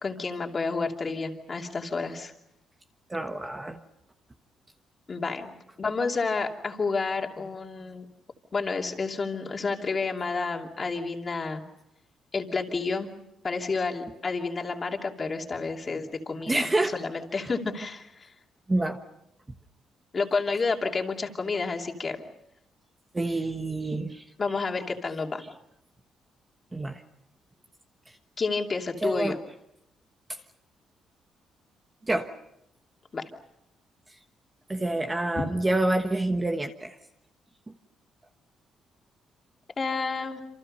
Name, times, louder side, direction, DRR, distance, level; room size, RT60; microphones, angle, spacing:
voice 1, 0.0-2.3 5.1-8.1 8.5-11.6 12.3-13.1 13.4-16.7 16.9-18.3 20.1-22.2 24.4-25.4 28.4-29.3 33.1-33.3 39.8-40.4, left 4 dB, 25° left, 2 dB, 2.8 m, -30 dB
voice 2, 3.1-3.8 16.5-17.0 17.4-17.5 18.7-19.0 23.1-24.2 26.7-27.0 29.0-29.4 30.3-30.4 32.0-32.3 34.7-37.0, right 2 dB, 15° right, 5 dB, 1.2 m, -27 dB
28.0 x 27.5 x 5.5 m, 0.80 s
cardioid pair, 155°, 0 cm